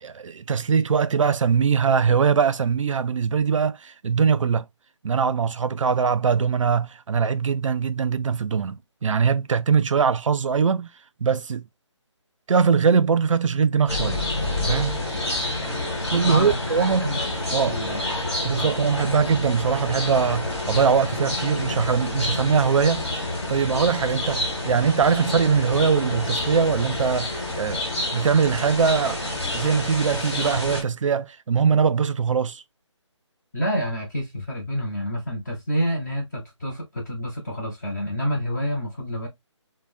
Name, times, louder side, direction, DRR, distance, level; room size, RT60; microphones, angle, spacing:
voice 1, 0.0-4.7 5.0-10.9 11.2-11.7 12.5-14.2 14.6-15.0 16.1-17.1 17.5-17.8 18.4-27.8 28.1-32.6, right 6 dB, 85° right, 0.4 m, -22 dB
sound 1, 13.9-30.8, left 2 dB, 55° left, 1.4 m, -28 dB
voice 2, 16.2-18.1 18.6-18.8 33.5-39.3, equal, 35° left, 0.7 m, -28 dB
3.3 x 2.0 x 2.4 m
hypercardioid pair, 175°, 16 cm